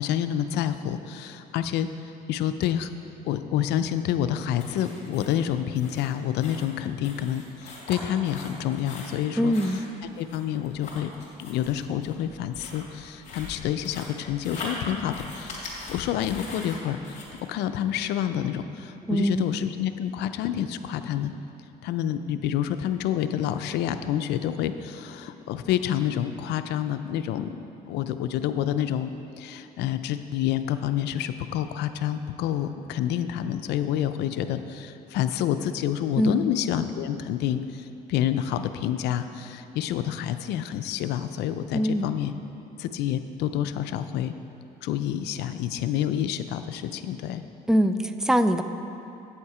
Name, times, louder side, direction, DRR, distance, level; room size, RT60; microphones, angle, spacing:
voice 1, 0.0-1.9 2.3-2.9 3.3-9.5 10.2-11.1 11.4-15.6 15.9-17.2 17.5-21.3 21.8-27.6 27.9-29.1 29.4-42.3 42.8-44.3 44.8-47.4, left 10 dB, 80° left, 10 dB, 0.5 m, -28 dB
sound 1, 4.6-17.4, left 2 dB, 45° left, 2.3 m, -41 dB
voice 2, 9.4-9.8 19.1-19.6 36.2-36.5 41.7-42.1 47.7-48.6, equal, 5° right, 10 dB, 0.3 m, -23 dB
8.6 x 7.1 x 4.9 m, 2.8 s
cardioid pair, 110°, 17 cm